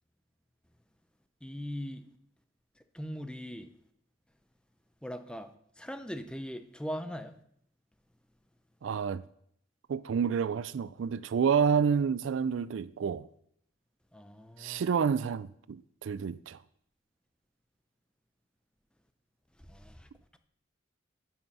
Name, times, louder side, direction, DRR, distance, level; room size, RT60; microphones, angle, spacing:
voice 1, 1.4-2.0 2.9-3.7 5.0-5.5 5.8-7.4 14.1-14.8 19.7-20.1, equal, 5° left, 0.5 m, -40 dB
voice 2, 8.8-9.2 9.9-13.3 14.6-16.6, right 6 dB, 75° right, 0.4 m, -29 dB
11.0 x 5.8 x 5.5 m
head